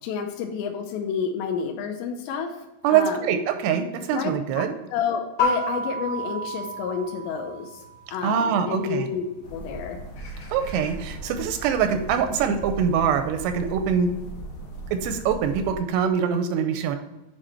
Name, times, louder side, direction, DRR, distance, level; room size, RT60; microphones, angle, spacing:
voice 1, 0.0-3.4 4.1-4.3 4.6-4.7 4.9-7.8 8.1-9.2 9.5-10.0, left 6 dB, 85° left, 3 dB, 2.9 m, -30 dB
voice 2, 2.8-4.7 8.2-9.1 10.5-14.1 14.9-17.0, right 7 dB, 85° right, 7 dB, 2.6 m, -24 dB
sound 1, 5.4-8.1, left 1 dB, 40° left, 1.7 m, -29 dB
sound 2, 9.4-15.8, right 1 dB, 65° left, 3.1 m, -38 dB
8.8 x 5.0 x 4.3 m, 1.0 s
omnidirectional pair, 5.1 m